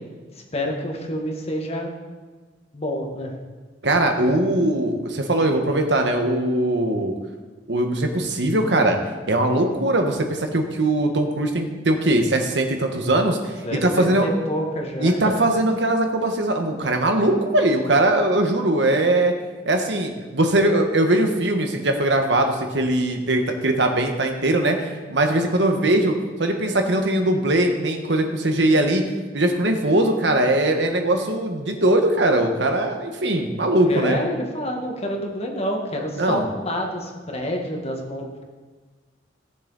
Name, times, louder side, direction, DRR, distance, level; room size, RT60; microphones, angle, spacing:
voice 1, 0.5-1.9 2.7-3.3 13.6-15.4 33.9-38.4, equal, 35° left, 1 dB, 1.7 m, -28 dB
voice 2, 3.8-7.1 7.7-9.0 9.3-14.3 15.0-19.3 19.6-29.0 29.3-34.2 36.2-36.5, right 1 dB, 70° right, 4 dB, 1.4 m, -21 dB
17.0 x 7.1 x 4.1 m, 1.4 s
head